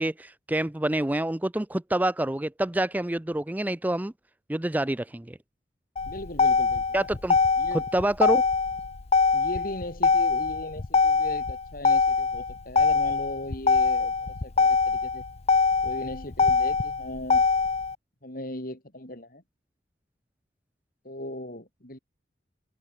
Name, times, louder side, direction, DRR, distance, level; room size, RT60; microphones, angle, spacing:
voice 1, 0.0-4.1 4.5-5.4 6.9-7.4 7.9-8.4, right 1 dB, 10° right, 0.5 m, -27 dB
voice 2, 6.0-6.8 7.6-7.8 9.3-15.2 15.8-17.5 18.2-19.4 21.0-22.0, left 1 dB, 55° left, 6.8 m, -38 dB
Motor vehicle (road), 6.0-17.9, left 4 dB, 35° left, 0.6 m, -23 dB
open air
head